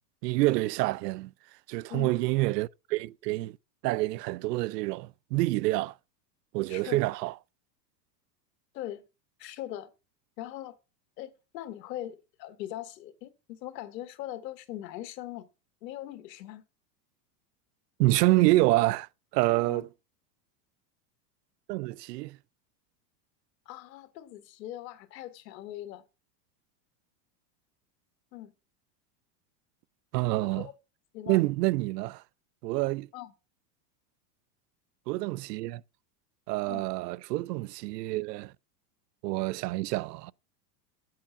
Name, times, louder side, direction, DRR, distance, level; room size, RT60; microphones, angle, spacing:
voice 1, 0.2-1.3 1.7-3.6 3.8-5.9 6.5-7.3 18.0-19.1 19.3-19.9 21.7-22.4 30.1-30.7 31.3-32.2 32.6-33.1 35.1-35.8 36.5-38.5 39.2-40.3, right 19 dB, 75° right, 0.6 m, -27 dB
voice 2, 6.7-7.0 8.7-9.0 9.4-9.9 10.4-10.8 11.2-15.5 15.8-16.6 19.6-19.8 23.6-26.0 28.3-28.5 30.4-30.7 31.1-31.4 33.1-33.3 36.7-36.8, left 13 dB, 75° left, 1.6 m, -41 dB
9.9 x 7.6 x 5.8 m
supercardioid pair, 140°, 49 cm